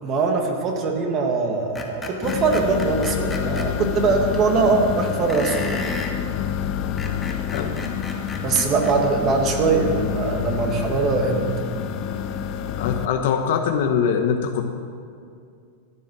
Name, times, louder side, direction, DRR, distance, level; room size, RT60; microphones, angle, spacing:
voice 1, 0.0-5.8 8.4-11.4, right 4 dB, 30° right, 3 dB, 1.7 m, -22 dB
Screech, 1.8-3.7 5.3-6.2 6.8-9.0, left 3 dB, 15° left, 1.3 m, -33 dB
sound 1, 2.2-13.1, left 8 dB, 40° left, 0.7 m, -28 dB
voice 2, 12.8-14.6, left 7 dB, 65° left, 4 dB, 1.0 m, -22 dB
14.0 x 9.5 x 6.2 m, 2.3 s
supercardioid pair, 145°, 0 cm